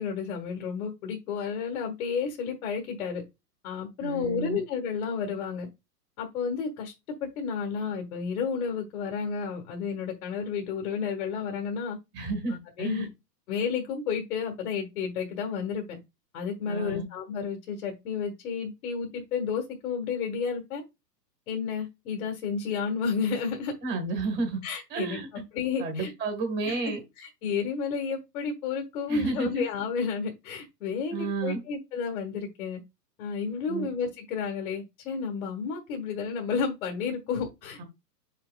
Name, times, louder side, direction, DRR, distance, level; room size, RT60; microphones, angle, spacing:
voice 1, 0.0-3.2 3.6-5.7 6.2-6.9 7.2-12.0 12.8-13.1 13.5-16.0 16.3-20.8 21.5-23.7 24.6-26.1 26.6-26.8 27.2-32.8 33.2-37.8, left 6 dB, 55° left, 3 dB, 1.5 m, -31 dB
voice 2, 4.0-4.6 12.1-13.1 16.7-17.0 23.8-24.6 24.9-25.3 25.8-27.0 29.1-29.7 31.1-31.6 33.7-33.9 37.8-37.9, right 3 dB, 20° right, 5 dB, 1.6 m, -31 dB
7.2 x 5.8 x 2.3 m, 0.23 s
hypercardioid pair, 145°, 49 cm